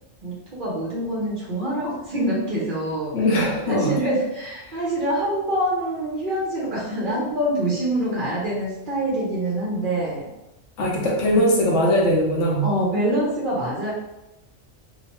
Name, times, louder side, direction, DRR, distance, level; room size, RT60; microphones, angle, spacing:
voice 1, 0.2-3.2 3.7-10.3 11.3-11.5 12.6-13.9, right 1 dB, 50° right, -5 dB, 0.7 m, -25 dB
voice 2, 3.1-3.9 10.8-12.7, equal, 75° left, -2 dB, 1.0 m, -20 dB
2.8 x 2.1 x 2.9 m, 0.94 s
omnidirectional pair, 1.3 m